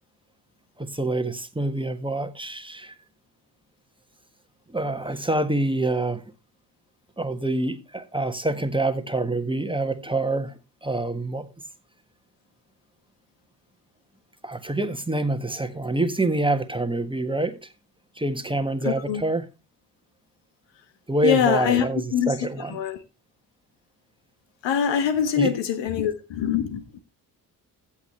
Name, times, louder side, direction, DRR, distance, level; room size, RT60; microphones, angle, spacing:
voice 1, 0.8-2.9 4.7-6.2 7.2-11.5 14.4-17.7 18.2-19.4 21.1-22.8 25.4-25.5, right 2 dB, 10° right, 1.4 m, -26 dB
voice 2, 18.8-19.2 21.2-21.9 22.1-22.3 22.7-23.0 24.6-27.0, left 8 dB, 65° left, 1.4 m, -23 dB
15.0 x 7.3 x 3.2 m
hypercardioid pair, 45°, 47 cm